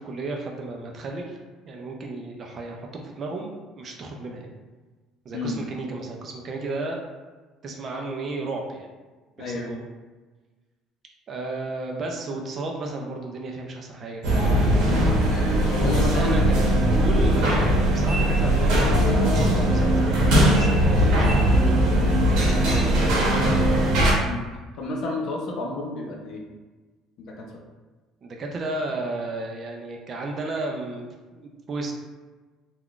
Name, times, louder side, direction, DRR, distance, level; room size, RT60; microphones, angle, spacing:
voice 1, 0.0-1.4 1.6-4.5 5.3-7.0 7.6-8.9 9.4-9.8 11.3-14.2 16.0-23.7 28.2-31.9, right 2 dB, 30° right, 1 dB, 0.4 m, -33 dB
voice 2, 9.4-9.7 14.8-15.1 15.7-16.6 24.2-24.4 24.8-26.4 27.2-27.5, left 2 dB, 50° left, 0 dB, 0.5 m, -30 dB
sound 1, 14.2-24.1, equal, 75° right, 0.8 m, -20 dB
3.5 x 2.2 x 2.4 m, 1.3 s
cardioid pair, 160°, 0 cm